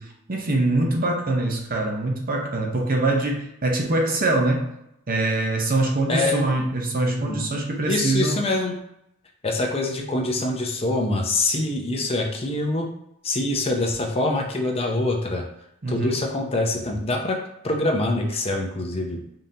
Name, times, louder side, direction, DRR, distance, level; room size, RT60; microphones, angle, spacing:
voice 1, 0.0-4.7 5.1-8.4 15.8-16.2, right 2 dB, 45° right, 1 dB, 0.7 m, -23 dB
voice 2, 6.1-6.5 7.1-7.4 7.9-8.7 9.4-12.9 13.2-15.4 15.9-17.4 17.6-19.2, left 2 dB, 30° left, 1 dB, 0.6 m, -25 dB
5.2 x 2.7 x 2.7 m, 0.79 s
head